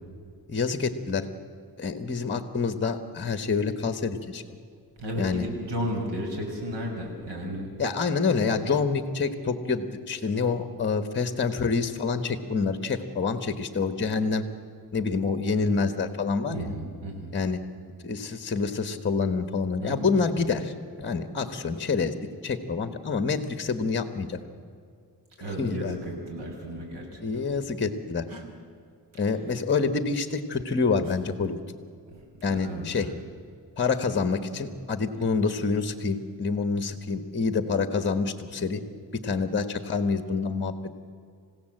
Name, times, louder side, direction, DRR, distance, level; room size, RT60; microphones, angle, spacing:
voice 1, 0.5-1.3 1.8-4.4 5.2-5.5 7.8-14.4 14.9-16.7 17.3-17.6 18.0-20.7 21.0-22.1 22.4-24.4 25.6-26.0 27.2-28.2 29.1-31.6 32.4-33.1 33.8-38.8 39.2-40.7, left 4 dB, 25° left, 8 dB, 1.3 m, -27 dB
voice 2, 5.0-7.7 16.5-17.3 19.8-20.1 25.4-27.2 32.4-32.9, equal, 90° right, 1 dB, 6.5 m, -33 dB
sound 1, 28.3-28.5 31.0-31.2 32.9-33.2 34.9-35.4, right 1 dB, 55° right, 3.5 m, -48 dB
28.0 x 16.0 x 7.9 m, 2.3 s
wide cardioid pair, 125°, 41 cm